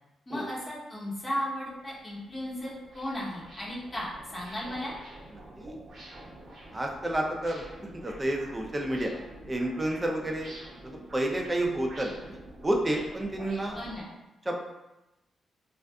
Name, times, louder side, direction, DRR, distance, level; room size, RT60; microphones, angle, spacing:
voice 1, 0.3-4.9 13.7-14.1, equal, 25° left, -5 dB, 0.8 m, -35 dB
sound 1, 1.7-14.0, right 1 dB, 55° right, 0.8 m, -48 dB
voice 2, 6.7-7.6 7.9-9.1 9.5-10.5 10.8-12.4 12.6-13.8 14.4-14.5, right 1 dB, 25° right, 1 dB, 0.5 m, -30 dB
2.5 x 2.4 x 2.2 m, 0.98 s
supercardioid pair, 60°, 0 cm